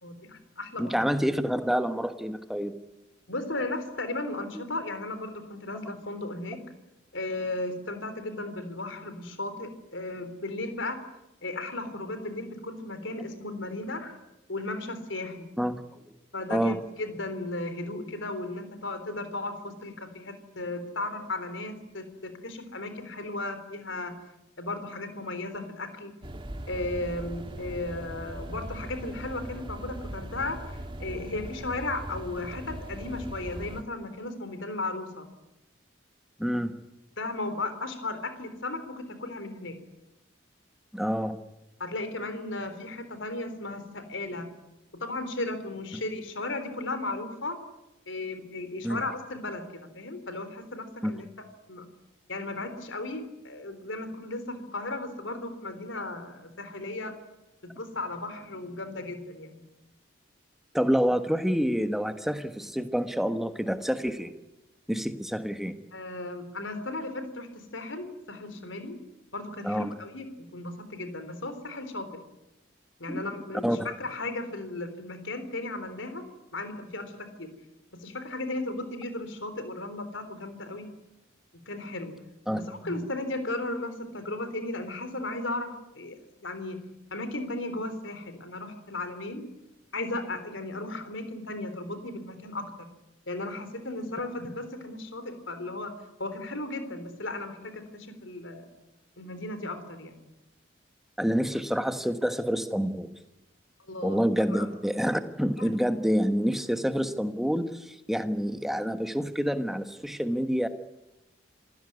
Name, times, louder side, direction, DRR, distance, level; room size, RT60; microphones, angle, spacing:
voice 1, 0.0-0.9 3.3-6.6 7.1-11.0 11.4-14.2 14.5-15.5 16.3-24.1 24.6-26.1 26.7-35.3 37.2-39.8 41.8-44.5 44.9-47.6 48.1-49.6 49.9-51.9 52.3-57.2 57.6-59.7 65.9-69.0 69.3-72.1 73.0-76.3 76.5-77.5 78.0-80.9 81.7-82.1 82.5-86.8 87.1-89.5 89.9-92.9 93.3-95.9 96.2-98.7 99.2-100.3 103.9-104.2 104.5-104.7 105.6-105.7, left 2 dB, 75° left, 9 dB, 3.8 m, -35 dB
voice 2, 0.8-2.8 15.6-15.7 16.5-16.8 36.4-36.8 40.9-41.4 48.8-49.0 51.0-51.2 60.7-64.3 64.9-65.7 69.6-69.9 73.1-73.2 73.6-73.9 82.5-82.6 101.2-103.1 104.0-110.7, equal, ahead, 8 dB, 1.3 m, -27 dB
sound 1, 26.2-33.8, right 1 dB, 25° right, 1.7 m, -39 dB
27.5 x 16.0 x 9.7 m, 0.95 s
head